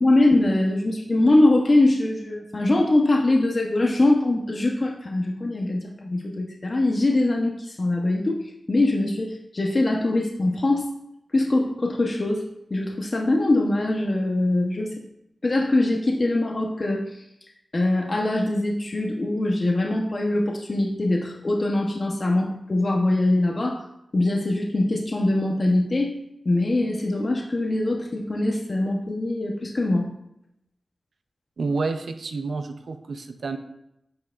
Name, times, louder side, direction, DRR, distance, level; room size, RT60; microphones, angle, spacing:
voice 1, 0.0-10.9 11.3-14.9 15.4-17.2 17.7-23.9 24.1-26.1 26.4-30.1, left 2 dB, 45° left, 0 dB, 1.0 m, -22 dB
voice 2, 31.6-33.6, right 3 dB, 80° right, 7 dB, 0.6 m, -29 dB
9.5 x 6.5 x 2.5 m, 0.81 s
wide cardioid pair, 75°, 0 cm